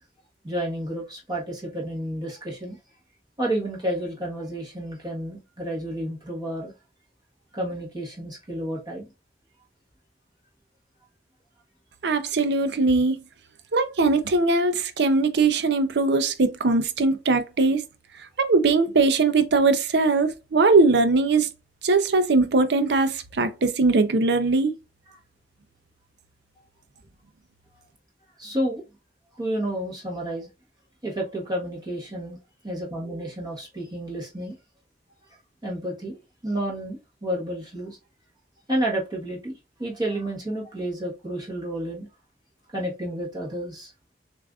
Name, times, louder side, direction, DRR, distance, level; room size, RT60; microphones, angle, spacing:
voice 1, 0.4-2.8 3.4-6.7 7.5-9.1 28.4-28.8 29.4-30.5 31.0-32.4 32.6-34.5 35.6-38.0 38.7-42.1 42.7-43.9, right 1 dB, 25° right, 1.3 m, -30 dB
voice 2, 12.0-13.2 13.7-17.8 18.4-21.5 21.8-24.7, right 3 dB, 65° right, 0.6 m, -20 dB
6.8 x 2.5 x 2.4 m
head